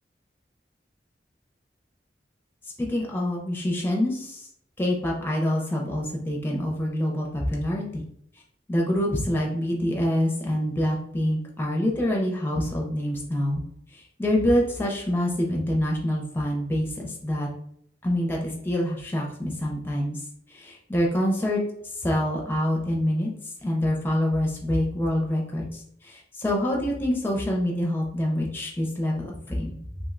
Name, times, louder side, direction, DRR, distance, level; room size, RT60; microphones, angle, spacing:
voice 1, 2.8-4.5 4.8-8.0 8.7-13.6 13.9-17.5 18.0-20.2 20.5-21.6 22.0-23.3 23.6-29.8, left 1 dB, 10° left, -2 dB, 0.4 m, -26 dB
2.6 x 2.1 x 3.6 m, 0.68 s
head